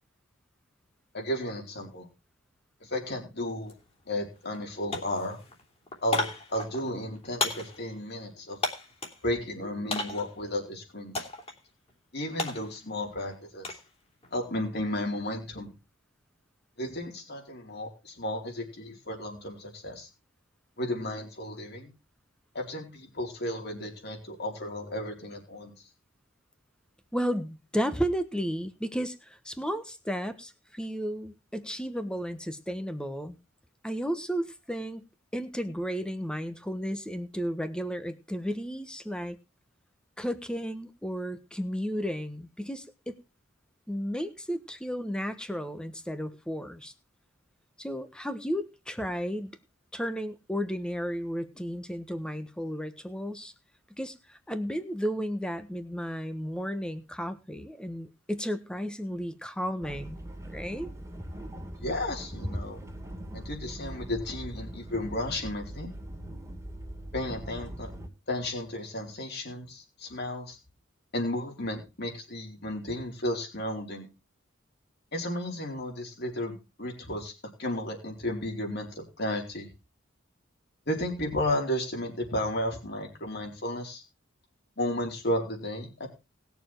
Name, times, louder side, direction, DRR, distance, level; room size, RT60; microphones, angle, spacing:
voice 1, 1.1-2.1 2.8-3.7 4.1-5.4 6.0-8.6 9.2-11.3 12.1-13.7 14.3-15.7 16.8-20.1 20.8-21.9 22.5-25.7 61.8-62.8 63.3-65.9 67.1-67.9 68.3-70.6 71.1-74.1 75.1-77.3 77.6-79.7 80.9-84.0 84.8-86.1, left 1 dB, 55° left, 2 dB, 4.4 m, -33 dB
sound 1, 3.7-3.8 4.1-4.6 4.9-9.2 9.9-10.4 11.1-11.6 11.9-13.9 14.2-14.7, left 2 dB, 30° left, 3.2 m, -34 dB
voice 2, 27.1-33.3 33.8-35.0 35.3-39.4 40.2-43.2 43.9-46.9 47.8-49.5 49.9-53.5 54.0-60.2 60.5-60.9, equal, 5° left, 10 dB, 1.3 m, -33 dB
sound 2, 59.8-68.1, right 1 dB, 15° right, 2.5 m, -41 dB
19.5 x 7.0 x 4.6 m, 0.29 s
head